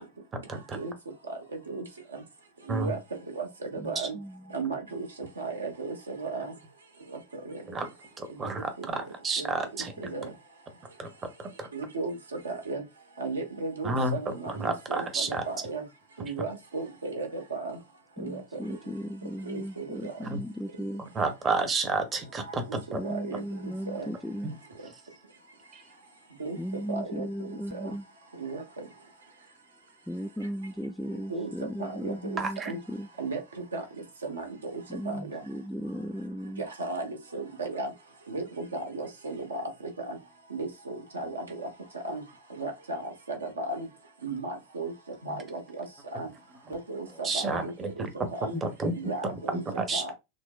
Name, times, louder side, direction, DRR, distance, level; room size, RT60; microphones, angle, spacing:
voice 1, 2.7-3.0 3.3-4.2 4.5-5.1 5.4-6.5 7.1-7.6 8.8-8.9 9.4-9.5 10.0-10.3 11.7-12.8 13.2-15.8 16.2-17.8 18.2-18.6 19.4-20.1 22.4-22.8 23.0-23.4 23.9-24.1 26.4-26.6 26.9-27.9 28.4-28.6 31.3-31.5 31.8-32.8 33.2-33.8 34.2-35.4 36.6-37.9 38.3-39.6 40.0-40.2 40.5-41.7 41.9-42.2 42.6-43.9 44.2-44.9 45.2-45.9 46.1-46.3 46.7-48.0 48.3-48.6 48.9-49.6 49.9-50.1, right 3 dB, 70° right, 1.0 m, -35 dB
voice 2, 3.8-4.4 18.2-21.0 22.9-24.5 26.6-28.1 30.1-32.6 32.9-33.1 34.9-36.7, equal, ahead, 0.3 m, -36 dB
voice 3, 8.2-9.9 11.0-11.1 11.4-11.7 13.8-14.2 14.6-15.4 20.2-20.4 21.1-23.1 24.4-24.6 25.7-25.8 32.4-32.7 47.2-48.3 48.6-48.9 49.5-50.0, right 3 dB, 25° right, 0.8 m, -30 dB
6.2 x 2.1 x 2.3 m
figure-of-eight pair, 90°, 0 cm